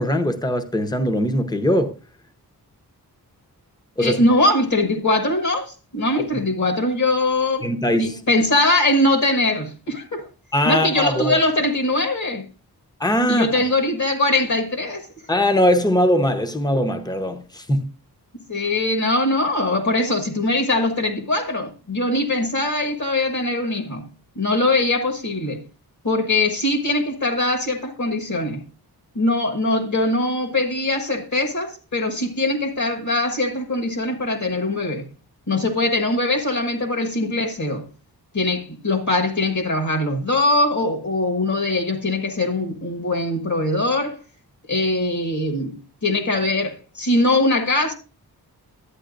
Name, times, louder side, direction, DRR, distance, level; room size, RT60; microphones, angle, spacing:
voice 1, 0.0-1.9 4.0-4.2 7.6-8.2 10.5-11.4 13.0-13.6 15.3-17.9, equal, 10° left, 0.8 m, -21 dB
voice 2, 4.0-10.3 10.6-12.5 13.3-15.1 18.5-24.1 24.3-25.6 26.0-28.6 29.1-35.1 35.5-37.9 38.3-44.2 44.7-47.9, left 2 dB, 50° left, 1.5 m, -22 dB
11.5 x 8.6 x 2.5 m
wide cardioid pair, 145°, 39 cm